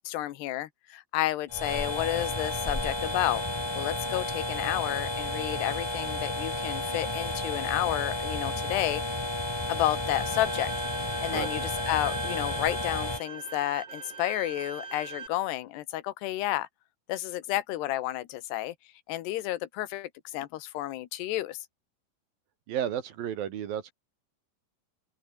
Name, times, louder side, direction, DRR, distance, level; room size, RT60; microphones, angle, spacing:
voice 1, 0.0-3.4 3.7-9.0 9.7-10.7 11.0-16.7 17.1-18.7 19.1-21.6, left 15 dB, 80° left, 3.4 m, -31 dB
sound 1, 1.5-13.2, left 1 dB, 10° left, 1.1 m, -32 dB
Bowed string instrument, 10.1-15.3, right 5 dB, 30° right, 2.7 m, -41 dB
voice 2, 22.7-23.9, right 9 dB, 65° right, 3.4 m, -32 dB
open air
omnidirectional pair, 4.7 m